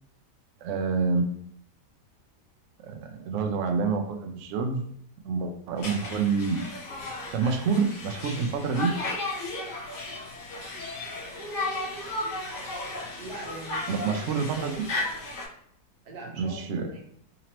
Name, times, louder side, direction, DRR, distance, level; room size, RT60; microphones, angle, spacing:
voice 1, 0.6-1.3 2.8-4.8 5.2-6.6 7.3-8.9 13.9-14.9 16.4-16.9, right 5 dB, 85° right, 5 dB, 0.6 m, -27 dB
Conversation, 5.8-15.5, left 2 dB, 55° left, 1.3 m, -35 dB
voice 2, 13.2-14.6 16.0-17.1, right 2 dB, 65° right, -2 dB, 1.3 m, -42 dB
3.9 x 2.9 x 2.9 m, 0.66 s
omnidirectional pair, 1.9 m